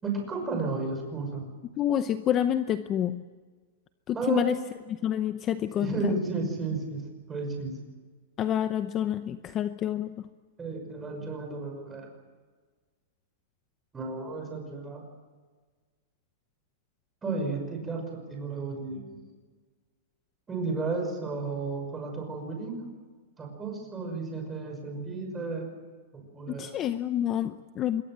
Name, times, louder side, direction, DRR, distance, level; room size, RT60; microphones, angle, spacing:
voice 1, 0.0-1.5 4.1-4.6 5.8-7.7 10.6-12.1 13.9-15.0 17.2-19.0 20.5-22.9 23.4-25.7 26.1-26.7, right 3 dB, 10° right, 2 dB, 5.9 m, -33 dB
voice 2, 1.8-3.2 4.1-4.6 4.9-6.1 8.4-10.3 26.5-28.0, left 10 dB, 25° left, 11 dB, 0.7 m, -28 dB
26.0 x 22.5 x 7.6 m, 1.4 s
supercardioid pair, 160°, 0 cm